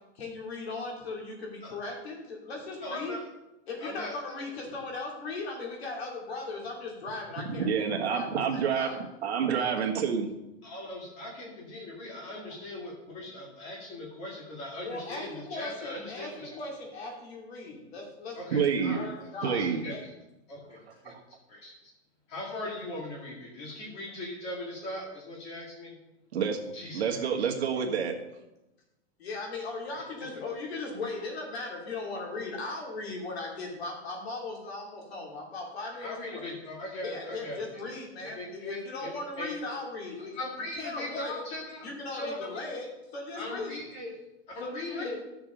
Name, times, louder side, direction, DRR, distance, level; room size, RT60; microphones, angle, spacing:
voice 1, 0.1-3.1 3.7-9.0 14.8-19.6 19.9-20.0 20.9-21.0 29.2-36.5 37.0-40.4 40.8-41.4 41.8-43.8 44.6-45.2, left 3 dB, 60° left, 0 dB, 3.0 m, -38 dB
voice 2, 2.8-3.2 3.8-4.1 10.6-16.6 18.4-19.1 19.4-19.9 20.5-20.8 21.0-21.1 21.5-21.7 22.3-26.0 26.7-27.2 36.0-37.6 38.2-39.5 40.3-42.4 43.4-44.1 44.5-45.2, left 1 dB, 15° left, -3 dB, 2.1 m, -39 dB
voice 3, 7.5-8.9 9.2-10.3 18.5-19.0 19.4-19.8 20.8-21.2 26.3-26.6 26.9-28.1, right 7 dB, 65° right, 2 dB, 1.5 m, -28 dB
12.5 x 6.9 x 3.9 m, 0.94 s
hypercardioid pair, 175°, 36 cm